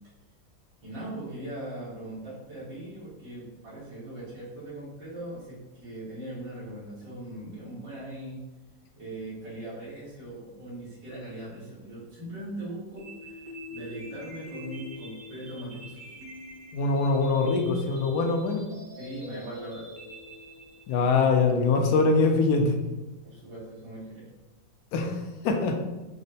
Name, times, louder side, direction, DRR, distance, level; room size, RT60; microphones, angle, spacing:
voice 1, 0.8-8.5 9.0-16.2 19.0-19.8 23.2-24.2, right 1 dB, 85° right, -10 dB, 2.2 m, -40 dB
sound 1, 13.0-21.0, left 1 dB, 50° right, 1.0 m, -44 dB
voice 2, 16.7-18.6 20.9-22.8 24.9-25.8, left 3 dB, 70° left, 4 dB, 1.0 m, -23 dB
6.1 x 2.1 x 2.7 m, 1.1 s
omnidirectional pair, 2.0 m